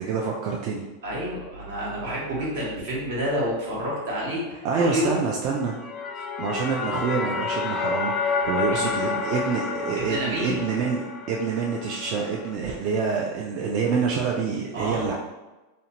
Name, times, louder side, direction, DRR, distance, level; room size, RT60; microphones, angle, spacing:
voice 1, 0.0-0.8 4.6-5.8 6.1-15.1, right 5 dB, 45° right, -1 dB, 0.3 m, -27 dB
voice 2, 1.0-5.2 8.4-9.0 10.1-10.6 14.7-15.1, equal, 75° right, -5 dB, 1.1 m, -29 dB
sound 1, 5.6-12.5, left 5 dB, 35° left, 0.3 m, -30 dB
2.6 x 2.1 x 2.8 m, 1.1 s
supercardioid pair, 125°, 0 cm